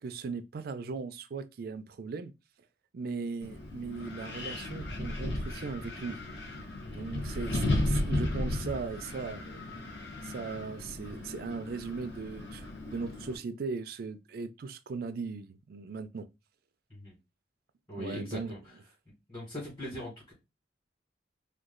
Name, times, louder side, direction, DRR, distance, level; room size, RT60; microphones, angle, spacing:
voice 1, 0.0-2.3 2.9-6.2 6.9-9.7 10.0-16.3 18.0-18.6, right 4 dB, 55° right, 0.4 m, -38 dB
Wind, 3.4-13.4, left 1 dB, 65° left, 0.9 m, -35 dB
voice 2, 17.9-18.7 19.3-20.3, left 1 dB, 25° left, 1.7 m, -41 dB
3.0 x 2.3 x 3.6 m
head